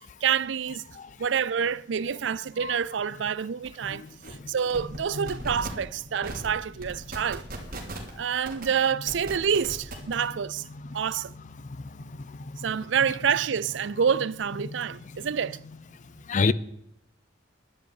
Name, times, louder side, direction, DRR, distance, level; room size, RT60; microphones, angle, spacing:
voice 1, 0.2-0.8 1.2-4.0 4.5-7.5 8.2-10.6 10.9-11.3 12.6-15.6, right 7 dB, 75° right, 0.5 m, -27 dB
sound 1, 3.6-3.7 4.0-4.3 4.7-5.0 5.3-5.7 6.2-6.5 6.8-8.1 8.4-8.6 9.1-10.1, right 2 dB, 50° right, 3.2 m, -37 dB
voice 2, 10.7-11.0 13.1-13.2 16.3-16.5, left 4 dB, 40° left, 0.5 m, -28 dB
11.5 x 8.8 x 8.8 m
head